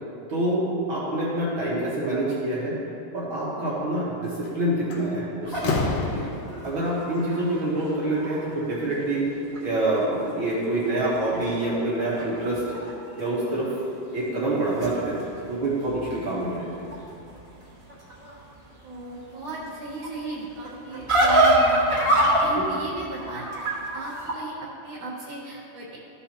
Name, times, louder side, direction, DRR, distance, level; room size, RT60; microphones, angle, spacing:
voice 1, 0.3-2.8 3.1-6.2 6.6-9.2 9.6-12.6 13.2-13.7 14.1-15.2 15.5-16.7 22.5-22.7, right 1 dB, 80° right, -7 dB, 1.1 m, -26 dB
Slam, 4.2-4.5 4.9-6.8, left 4 dB, 75° left, 1.7 m, -28 dB
sound 1, 5.4-8.7 9.1-9.2 9.5-10.3 10.6-12.9 13.2-13.7 14.3-24.3, right 1 dB, 20° right, 0.7 m, -27 dB
voice 2, 18.8-23.7 23.9-26.0, right 2 dB, 65° right, -7 dB, 1.9 m, -37 dB
14.0 x 5.6 x 2.9 m, 2.7 s
omnidirectional pair, 4.0 m